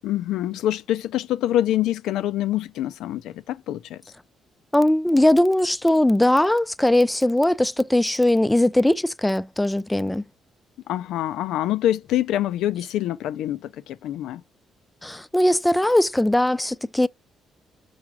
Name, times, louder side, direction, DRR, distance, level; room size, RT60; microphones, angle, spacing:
voice 1, 0.0-4.0 10.9-14.4, left 12 dB, 85° left, 0.4 m, -25 dB
voice 2, 4.7-10.2 15.0-17.1, left 1 dB, 10° left, 0.3 m, -20 dB
6.1 x 4.8 x 4.7 m
cardioid pair, 90°, 0 cm